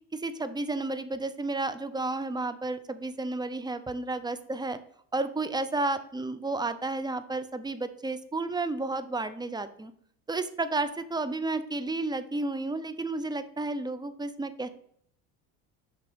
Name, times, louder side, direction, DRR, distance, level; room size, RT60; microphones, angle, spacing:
voice 1, 0.1-4.8 5.1-9.9 10.3-14.7, right 2 dB, 10° right, 11 dB, 0.6 m, -32 dB
7.1 x 5.8 x 5.0 m, 0.66 s
supercardioid pair, 100°, 43 cm